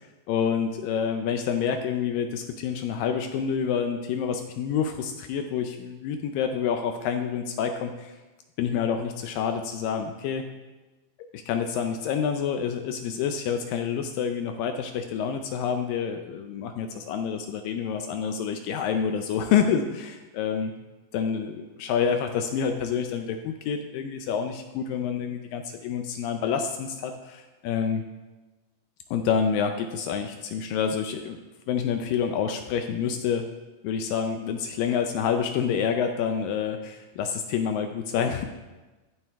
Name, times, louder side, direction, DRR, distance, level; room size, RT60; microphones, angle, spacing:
voice 1, 0.3-8.2 8.6-10.4 11.3-20.7 21.1-28.0 29.1-31.4 31.7-33.5 33.8-38.4, left 7 dB, 80° left, 6 dB, 2.1 m, -28 dB
13.5 x 8.9 x 3.5 m, 1.2 s
omnidirectional pair, 4.5 m